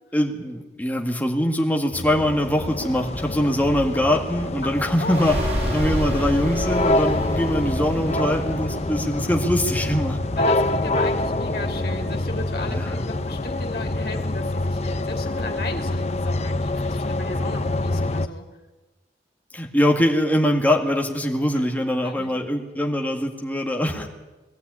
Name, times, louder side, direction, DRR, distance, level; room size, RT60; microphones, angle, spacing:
voice 1, 0.1-5.4 5.7-10.2 12.6-13.0 19.5-24.1, equal, 10° left, 2 dB, 2.0 m, -23 dB
sound 1, 1.9-18.3, left 2 dB, 35° left, 0.7 m, -26 dB
voice 2, 3.2-3.6 4.6-4.7 5.0-5.3 10.4-18.4 22.0-22.3 23.9-24.1, left 2 dB, 55° left, 2 dB, 2.8 m, -35 dB
sound 2, 4.9-16.2, equal, 35° right, 6.7 m, -32 dB
20.0 x 14.0 x 9.7 m, 1.2 s
head